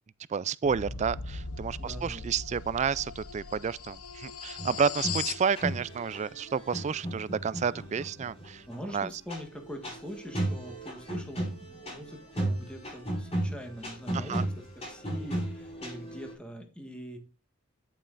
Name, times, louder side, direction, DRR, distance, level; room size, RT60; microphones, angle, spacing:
voice 1, 0.3-8.6 8.9-9.1 14.1-14.5, right 6 dB, 30° right, 0.3 m, -30 dB
sound 1, 0.6-5.5, left 6 dB, 85° left, 0.9 m, -39 dB
voice 2, 1.8-2.3 8.7-17.2, equal, 5° left, 1.5 m, -43 dB
sound 2, 4.6-16.3, right 1 dB, 30° left, 4.9 m, -36 dB
9.6 x 8.8 x 2.5 m
head